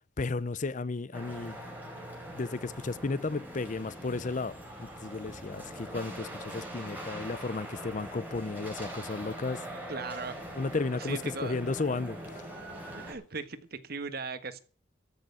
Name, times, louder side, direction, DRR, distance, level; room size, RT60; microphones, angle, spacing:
voice 1, 0.2-1.6 2.3-9.6 10.5-12.4, left 3 dB, 40° left, 0.6 m, -34 dB
sound 1, 1.1-13.1, right 1 dB, 10° right, 5.1 m, -42 dB
voice 2, 9.9-10.4 10.9-11.6 13.0-14.6, right 4 dB, 55° right, 1.4 m, -38 dB
14.0 x 6.8 x 8.2 m
head